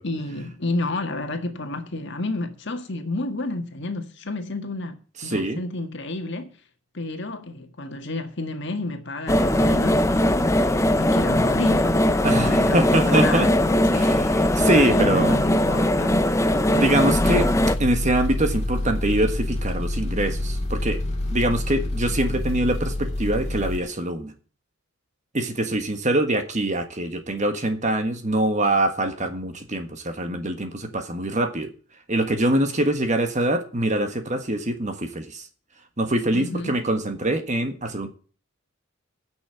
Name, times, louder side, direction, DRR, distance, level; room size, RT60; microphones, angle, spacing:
voice 1, 0.0-6.5 6.9-12.0 12.4-14.1 14.6-16.9 36.3-36.7, left 2 dB, 55° left, 1.7 m, -31 dB
voice 2, 5.2-5.6 12.2-13.5 13.9-15.4 16.7-17.5 17.8-21.0 21.3-24.3 25.3-31.7 32.1-35.4 36.0-38.1, right 1 dB, 35° right, 1.5 m, -24 dB
sound 1, 9.3-17.8, left 1 dB, 15° left, 0.6 m, -20 dB
sound 2, 17.1-23.8, left 1 dB, 30° left, 2.1 m, -27 dB
9.7 x 6.4 x 8.8 m
head